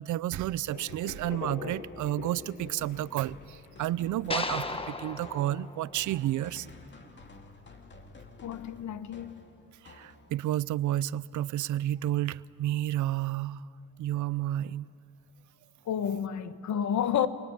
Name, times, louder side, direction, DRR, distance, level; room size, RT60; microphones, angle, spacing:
voice 1, 0.0-6.7 9.8-13.6 14.0-14.9, right 13 dB, 75° right, 0.6 m, -31 dB
sound 1, 0.7-5.7, left 7 dB, 85° left, 1.9 m, -44 dB
sound 2, 2.8-10.6, left 3 dB, 35° left, 2.5 m, -52 dB
sound 3, 4.3-6.7, left 2 dB, 20° left, 1.5 m, -36 dB
voice 2, 8.4-9.4 15.8-17.3, left 9 dB, 70° left, 1.4 m, -30 dB
27.5 x 22.0 x 9.8 m
cardioid pair, 90°, 30 cm